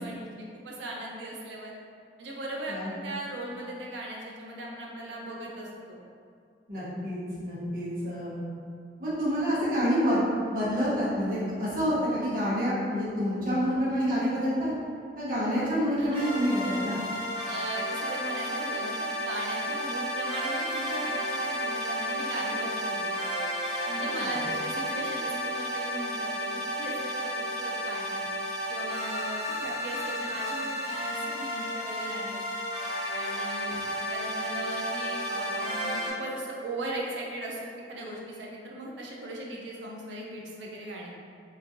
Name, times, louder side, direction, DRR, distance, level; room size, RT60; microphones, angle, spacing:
voice 1, 0.0-1.7 2.2-6.0 16.0-16.2 17.5-23.2 23.9-28.3 28.7-32.4 33.1-41.1, right 1 dB, 90° right, -2 dB, 0.5 m, -38 dB
voice 2, 6.7-8.4 9.0-14.7 15.1-17.0 23.9-24.4, equal, 50° right, -10 dB, 0.9 m, -28 dB
sound 1, 16.1-36.1, equal, 30° right, 1.3 m, -32 dB
3.0 x 2.5 x 2.5 m, 2.3 s
head